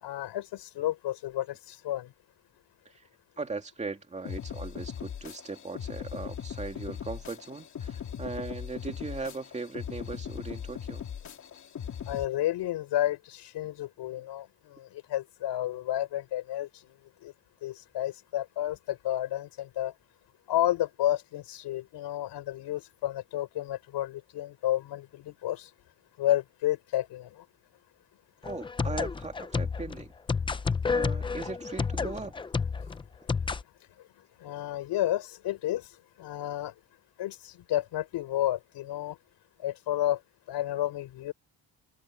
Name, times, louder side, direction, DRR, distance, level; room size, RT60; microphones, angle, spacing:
voice 1, 0.0-2.1 12.1-16.7 17.2-17.3 17.6-19.9 20.5-25.7 26.2-27.4 34.4-35.9 36.2-36.7 37.2-39.2 39.6-40.2 40.5-41.3, left 13 dB, 90° left, 4.0 m, -31 dB
voice 2, 3.4-11.0 28.4-30.1 30.9-32.4, right 3 dB, 15° right, 2.4 m, -38 dB
sound 1, 4.2-12.2, left 8 dB, 45° left, 3.0 m, -39 dB
sound 2, 28.4-33.6, left 5 dB, 15° left, 0.3 m, -30 dB
cardioid pair, 180°, 40 cm